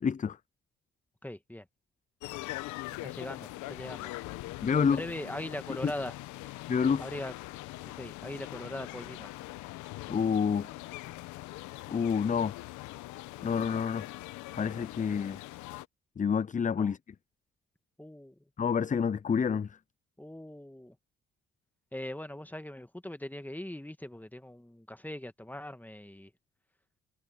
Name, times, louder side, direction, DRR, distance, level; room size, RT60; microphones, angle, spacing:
voice 1, 0.0-0.4 4.6-5.0 5.8-5.9 6.7-7.1 10.1-10.7 11.9-12.5 13.4-14.1 14.6-15.4 16.2-17.0 18.6-19.8, left 6 dB, 25° left, 0.6 m, -28 dB
voice 2, 1.2-1.7 3.0-4.1 4.8-6.1 7.0-7.3 8.0-9.3 16.8-16.9 18.0-18.3 20.2-21.0 21.9-26.3, left 1 dB, 5° left, 2.1 m, -41 dB
sound 1, 2.2-15.8, left 19 dB, 80° left, 1.2 m, -42 dB
hypercardioid pair, 50°, 29 cm